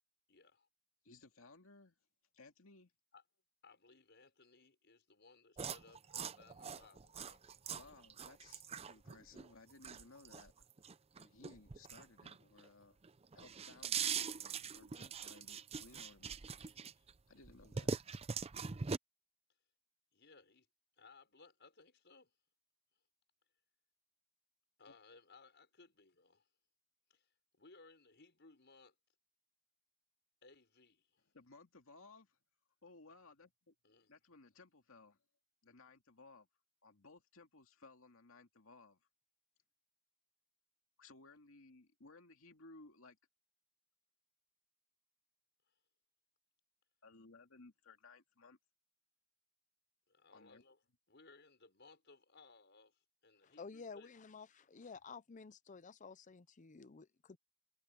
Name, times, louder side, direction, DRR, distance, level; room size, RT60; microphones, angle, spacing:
voice 1, 0.3-0.7 3.1-3.2 3.6-7.8 20.1-20.7 21.0-22.3 24.8-26.5 27.1-28.9 30.4-31.2 33.8-34.2 45.7-45.8 50.1-50.8 51.1-54.1, left 3 dB, 55° left, 5.8 m, -63 dB
voice 2, 1.0-2.0 2.3-2.9 7.8-10.5 11.2-13.0 13.3-17.9 24.9-25.0 31.3-32.4 32.8-33.7 34.1-35.2 35.6-36.5 36.8-39.1 41.0-43.2 47.0-48.6 50.3-50.6, left 3 dB, 85° left, 2.3 m, -60 dB
sound 1, 5.6-12.7 13.0-17.1 17.4-19.0, right 6 dB, 30° right, 0.5 m, -42 dB
voice 3, 53.4-57.4, left 5 dB, 40° left, 0.6 m, -52 dB
head